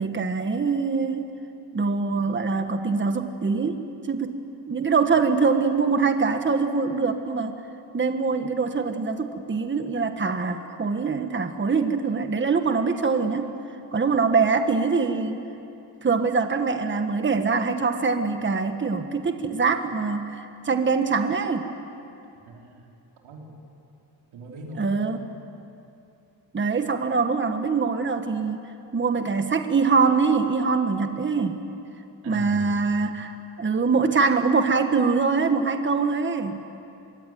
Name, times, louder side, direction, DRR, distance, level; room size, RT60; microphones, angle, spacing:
voice 1, 0.0-1.4 1.7-7.6 7.9-13.5 13.9-15.4 16.0-21.7 24.8-25.2 26.5-31.6 32.2-36.6, right 4 dB, 25° right, 7 dB, 1.5 m, -24 dB
voice 2, 22.4-23.0 23.2-23.5 24.3-25.0 32.2-32.9, right 1 dB, 85° right, 0 dB, 5.0 m, -40 dB
25.0 x 23.0 x 9.4 m, 2.7 s
cardioid pair, 130°, 46 cm